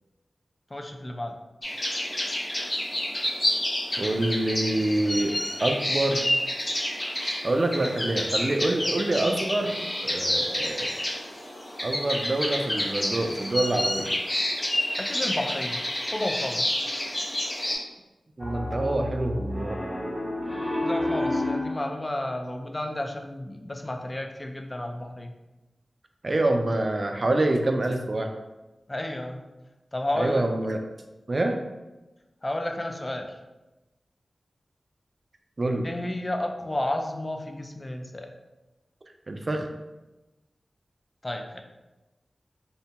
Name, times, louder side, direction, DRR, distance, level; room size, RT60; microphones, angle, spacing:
voice 1, 0.7-1.3 15.0-15.8 16.1-16.7 20.8-25.3 28.9-29.4 29.9-30.4 32.4-33.4 35.8-38.3 41.2-41.6, left 1 dB, 30° left, 4 dB, 0.4 m, -32 dB
sound 1, 1.6-17.8, left 1 dB, 60° left, 1.1 m, -29 dB
voice 2, 4.0-5.3 5.6-6.3 7.4-11.0 11.8-14.1 18.4-19.8 26.2-28.3 30.2-30.8 31.3-31.6 35.6-35.9 39.3-39.7, right 2 dB, 55° right, 4 dB, 0.3 m, -26 dB
Piano, 18.4-21.8, left 1 dB, 10° right, 1.2 m, -30 dB
2.7 x 2.2 x 2.8 m, 1.0 s
cardioid pair, 40°, 0 cm